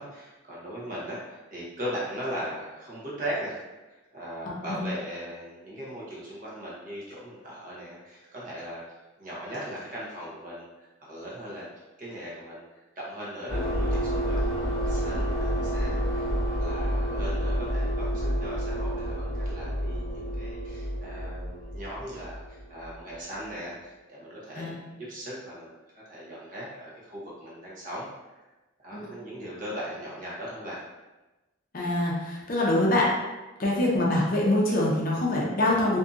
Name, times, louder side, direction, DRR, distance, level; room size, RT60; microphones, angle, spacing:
voice 1, 0.0-8.8 9.2-11.7 12.0-16.3 16.6-25.8 26.1-28.1 28.8-30.8, equal, 40° right, -6 dB, 0.8 m, -39 dB
sound 1, 13.5-23.0, equal, 80° right, 0.9 m, -29 dB
voice 2, 31.7-33.1 33.6-36.0, left 1 dB, 45° left, -4 dB, 0.5 m, -24 dB
2.6 x 2.6 x 2.4 m, 1.1 s
head